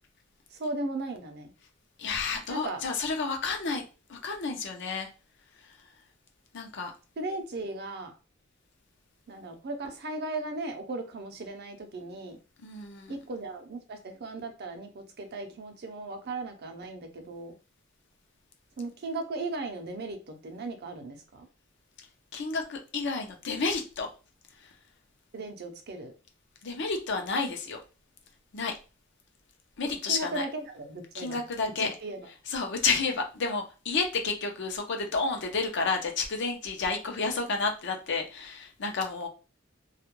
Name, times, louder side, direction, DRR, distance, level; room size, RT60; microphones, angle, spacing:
voice 1, 0.5-1.5 2.5-2.8 7.2-8.1 9.3-12.4 13.1-17.5 18.8-21.5 25.3-26.1 30.0-32.3, right 2 dB, 55° right, 5 dB, 0.5 m, -37 dB
voice 2, 2.0-3.8 4.1-5.1 6.5-6.9 12.6-13.2 22.3-24.1 26.6-27.8 28.5-28.7 29.8-30.5 31.1-31.9 32.5-39.3, left 4 dB, 60° left, 3 dB, 0.6 m, -30 dB
2.3 x 2.1 x 3.0 m, 0.32 s
head